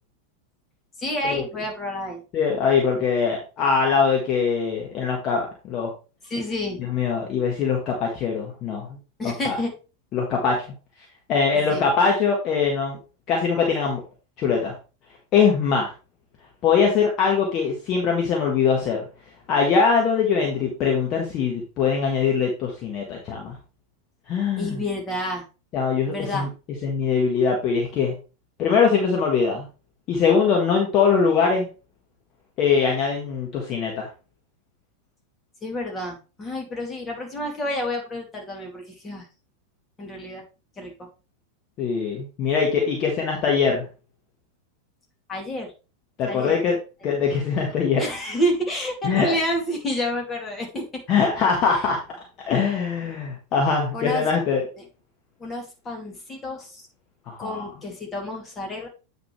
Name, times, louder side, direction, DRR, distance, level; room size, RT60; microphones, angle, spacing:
voice 1, 1.0-2.2 6.2-6.8 9.2-9.7 11.5-11.8 24.6-25.4 26.1-26.5 35.6-39.3 40.0-40.4 40.8-40.9 45.3-45.7 46.3-46.6 47.0-47.1 48.0-51.0 53.9-54.3 54.8-54.9 55.4-56.8 57.4-58.9, equal, 20° left, 1 dB, 2.6 m, -29 dB
voice 2, 2.3-5.9 6.8-8.9 9.2-9.6 10.1-10.6 11.3-13.0 13.3-14.0 14.4-14.7 15.3-15.9 16.6-19.0 19.5-23.6 24.3-24.8 25.7-26.5 26.8-28.1 28.6-29.6 30.1-31.7 32.6-34.1 41.8-43.8 46.2-46.8 47.0-48.0 49.0-49.4 51.1-52.0 52.5-54.6 57.3-57.6, left 5 dB, 35° left, 0 dB, 1.7 m, -22 dB
8.6 x 5.2 x 3.3 m, 0.32 s
figure-of-eight pair, 90°, 0 cm